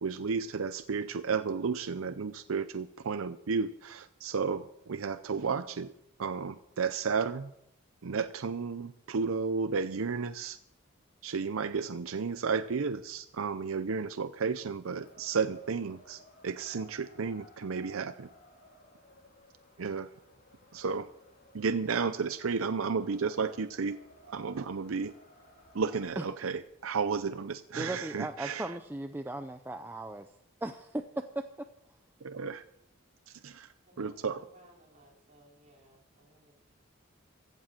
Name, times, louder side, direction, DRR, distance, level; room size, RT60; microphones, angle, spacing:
voice 1, 0.0-5.9 6.2-7.5 8.0-10.6 11.2-18.3 19.8-20.1 20.7-21.1 21.5-24.0 24.3-25.1 25.7-28.7 32.2-32.6 33.3-33.7 34.0-34.4, right 5 dB, 80° right, 12 dB, 0.6 m, -33 dB
Wind, 14.8-26.0, left 1 dB, 45° left, 3.1 m, -58 dB
voice 2, 27.7-30.3 30.6-31.7, right 1 dB, 10° right, 6 dB, 0.5 m, -37 dB
voice 3, 28.3-29.1 33.8-36.6, right 1 dB, 35° right, -2 dB, 3.9 m, -61 dB
15.5 x 7.6 x 7.7 m, 0.80 s
head